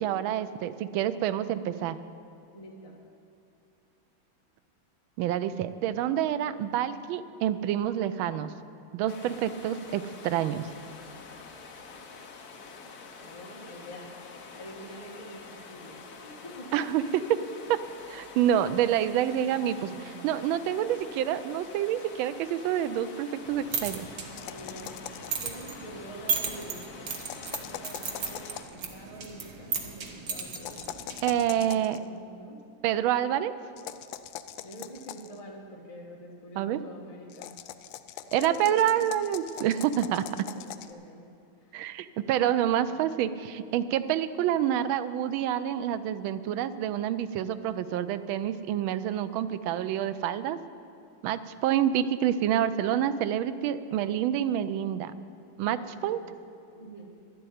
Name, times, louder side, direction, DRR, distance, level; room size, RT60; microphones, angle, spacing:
voice 1, 0.0-2.0 5.2-8.5 8.9-10.7 16.7-17.4 17.7-17.8 18.1-24.1 31.2-32.0 32.8-33.5 36.6-36.8 38.3-40.5 41.7-50.6 51.2-55.1 55.6-56.2, right 10 dB, 80° right, 12 dB, 1.4 m, -27 dB
voice 2, 2.5-3.0 13.2-14.2 14.5-16.8 19.2-20.4 24.3-25.0 25.4-26.9 27.6-31.0 31.5-32.6 34.6-37.6 38.1-39.2 40.3-41.3 41.6-41.8 55.6-56.3 56.7-57.1, equal, 20° left, -2 dB, 1.5 m, -46 dB
sound 1, 9.1-28.6, left 4 dB, 55° left, 1.3 m, -47 dB
sound 2, 23.4-31.5, right 5 dB, 55° right, 1.6 m, -36 dB
sound 3, 24.4-25.4 27.2-28.8 30.5-32.0 33.8-35.4 37.3-40.9, left 11 dB, 75° left, 1.2 m, -42 dB
11.5 x 7.8 x 9.3 m, 2.5 s
omnidirectional pair, 2.3 m